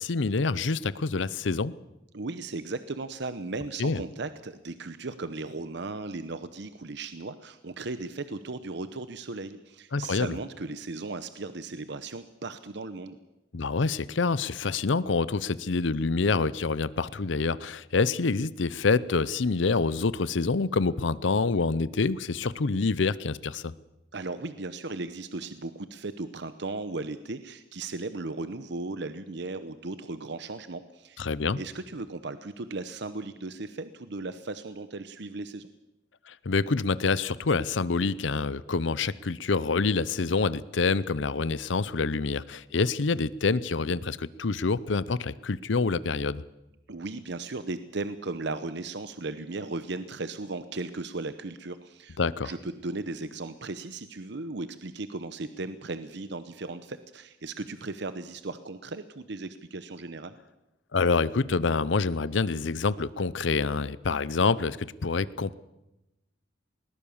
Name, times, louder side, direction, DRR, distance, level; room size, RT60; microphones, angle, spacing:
voice 1, 0.0-1.7 3.8-4.0 9.9-10.3 13.5-23.7 31.2-31.6 36.3-46.4 52.2-52.5 60.9-65.5, left 4 dB, 70° left, 18 dB, 0.7 m, -27 dB
voice 2, 2.1-13.2 24.1-31.2 31.6-35.7 46.9-52.2 52.4-60.4, right 3 dB, 60° right, 12 dB, 0.9 m, -36 dB
20.5 x 19.5 x 7.2 m, 0.94 s
head